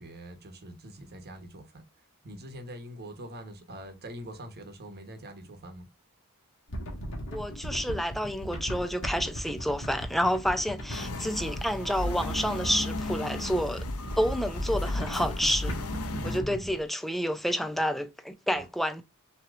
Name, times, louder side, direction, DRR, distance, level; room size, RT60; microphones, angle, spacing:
voice 1, 0.0-5.9 11.0-11.2 16.1-16.7 18.5-18.7, equal, 45° right, 1.0 m, -44 dB
sound 1, 6.7-16.8, equal, 60° left, 1.8 m, -38 dB
voice 2, 7.3-13.8 14.2-15.8 16.2-19.0, equal, ahead, 0.5 m, -29 dB
sound 2, 10.9-16.4, left 2 dB, 90° left, 0.8 m, -34 dB
6.2 x 3.0 x 2.5 m
head